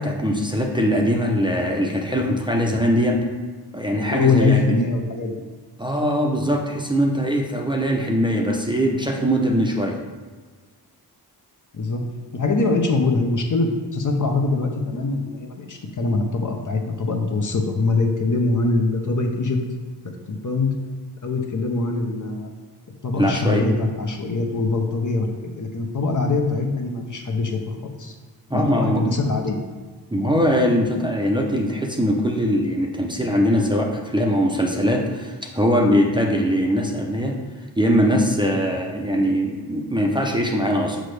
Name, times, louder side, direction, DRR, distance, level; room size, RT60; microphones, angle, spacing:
voice 1, 0.0-3.2 3.7-4.6 5.8-10.0 23.2-23.8 28.5-29.1 30.1-37.4 37.8-41.0, equal, 10° right, 0 dB, 0.7 m, -21 dB
voice 2, 3.9-5.3 11.7-12.0 12.3-19.6 20.0-20.7 21.2-22.5 23.0-28.1 28.5-29.6, left 3 dB, 50° left, 3 dB, 0.8 m, -23 dB
6.3 x 5.2 x 3.3 m, 1.4 s
wide cardioid pair, 105°, 41 cm